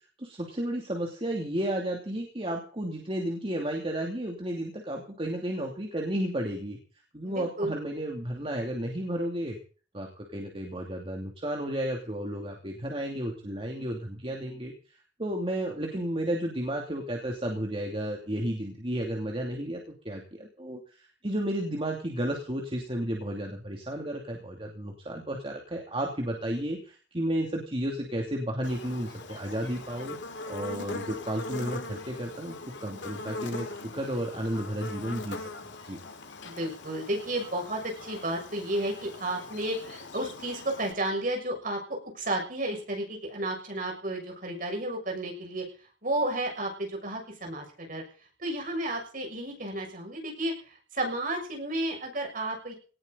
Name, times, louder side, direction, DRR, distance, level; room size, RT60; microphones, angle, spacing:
voice 1, 0.2-6.8 7.1-9.6 9.9-14.7 15.2-30.2 30.5-35.5 35.8-36.0, right 1 dB, 30° right, 0 dB, 2.8 m, -33 dB
voice 2, 7.2-7.7 36.4-45.6 46.0-48.0 48.4-52.7, right 1 dB, 50° right, 2 dB, 6.7 m, -32 dB
Buzz, 28.6-40.9, left 2 dB, 85° left, 2.4 m, -41 dB
18.5 x 16.5 x 4.1 m, 0.40 s
head